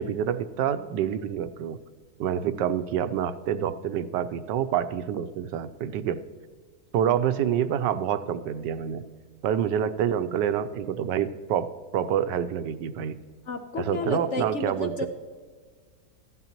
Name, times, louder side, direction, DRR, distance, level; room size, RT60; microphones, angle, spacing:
voice 1, 0.0-1.8 2.2-6.2 6.9-9.0 9.4-13.1 13.8-15.1, right 9 dB, 90° right, 11 dB, 1.3 m, -27 dB
voice 2, 13.5-15.1, left 3 dB, 55° left, 5 dB, 0.9 m, -31 dB
15.0 x 12.0 x 2.9 m, 1.5 s
omnidirectional pair, 1.9 m